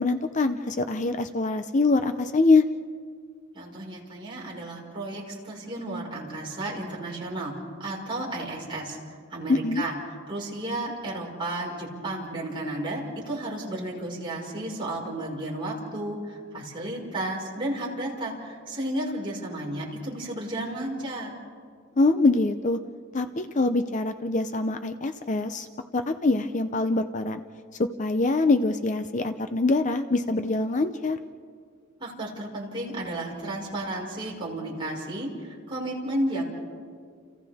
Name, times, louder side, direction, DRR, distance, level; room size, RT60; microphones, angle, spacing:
voice 1, 0.0-2.6 9.5-9.8 22.0-22.8 23.1-25.7 25.9-27.4 27.8-31.2, left 3 dB, 35° left, 8 dB, 0.6 m, -24 dB
voice 2, 3.5-9.0 9.3-21.3 32.0-36.4, right 1 dB, 25° right, -4 dB, 5.2 m, -33 dB
30.0 x 29.5 x 3.6 m, 2.1 s
head